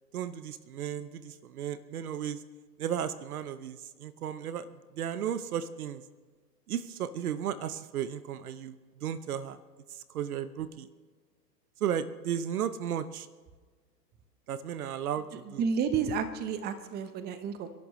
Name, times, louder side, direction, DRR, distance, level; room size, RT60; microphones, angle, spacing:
voice 1, 0.1-2.4 2.8-4.7 4.9-6.0 6.7-9.6 9.9-10.9 11.8-13.3 14.5-15.6, right 9 dB, 60° right, 13 dB, 1.0 m, -34 dB
voice 2, 15.6-17.7, right 6 dB, 20° right, 10 dB, 1.0 m, -31 dB
29.0 x 11.5 x 3.2 m, 1.4 s
hypercardioid pair, 120°, 50 cm